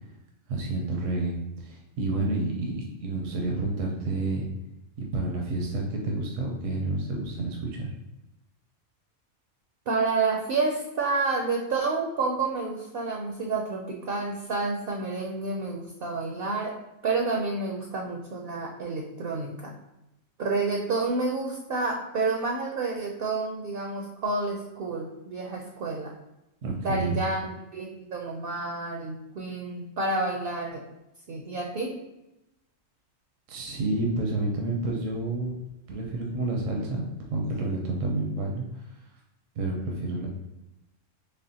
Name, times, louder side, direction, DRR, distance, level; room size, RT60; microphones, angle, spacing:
voice 1, 0.5-4.5 5.0-7.9 26.6-27.2 33.5-35.6 35.9-38.9 39.6-40.3, right 2 dB, 80° right, 0 dB, 1.0 m, -29 dB
voice 2, 9.9-16.8 17.0-19.7 20.4-26.1 26.8-30.8 31.3-32.0, right 3 dB, 60° right, 0 dB, 0.6 m, -29 dB
4.2 x 3.2 x 2.7 m, 0.93 s
omnidirectional pair, 1.3 m